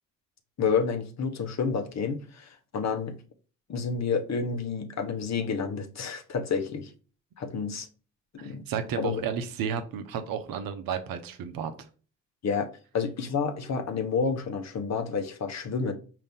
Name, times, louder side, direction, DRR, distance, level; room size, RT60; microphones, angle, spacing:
voice 1, 0.6-3.2 3.7-6.9 7.4-7.9 8.3-8.6 9.0-9.2 12.4-12.7 12.9-15.9, left 5 dB, 45° left, 1.0 m, -29 dB
voice 2, 8.4-11.7, right 7 dB, 60° right, 0.8 m, -32 dB
5.1 x 2.9 x 3.5 m
hypercardioid pair, 45°, 38 cm